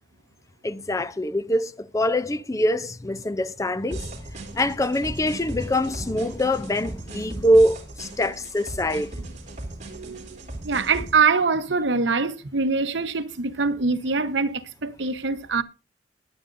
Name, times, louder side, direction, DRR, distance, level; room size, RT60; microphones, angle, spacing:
voice 1, 0.6-4.1 4.5-9.1, equal, 20° left, 0.5 m, -24 dB
sound 1, 3.9-11.2, right 2 dB, 40° right, 3.4 m, -37 dB
voice 2, 9.8-15.6, right 4 dB, 80° right, 1.0 m, -24 dB
21.0 x 8.8 x 2.6 m
head